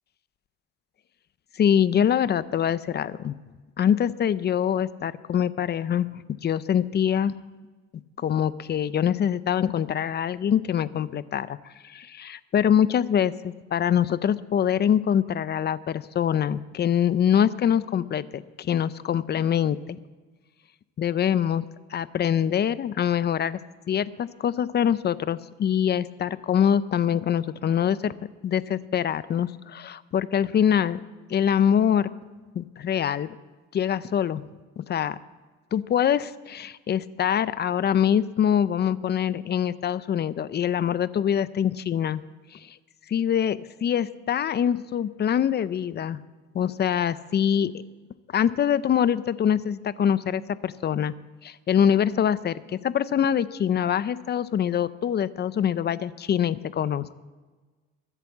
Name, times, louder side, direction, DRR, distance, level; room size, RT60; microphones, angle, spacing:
voice 1, 1.6-3.4 3.8-7.3 8.2-11.6 11.8-20.0 21.0-21.6 21.9-23.6 23.9-28.1 28.4-31.0 31.3-32.1 32.6-33.4 33.7-34.4 34.8-35.2 35.7-42.2 42.5-42.8 43.1-46.2 46.5-47.7 48.3-51.1 51.4-57.2, left 9 dB, 35° left, 16 dB, 0.6 m, -24 dB
22.0 x 8.3 x 7.3 m, 1.3 s
cardioid pair, 125°, 30 cm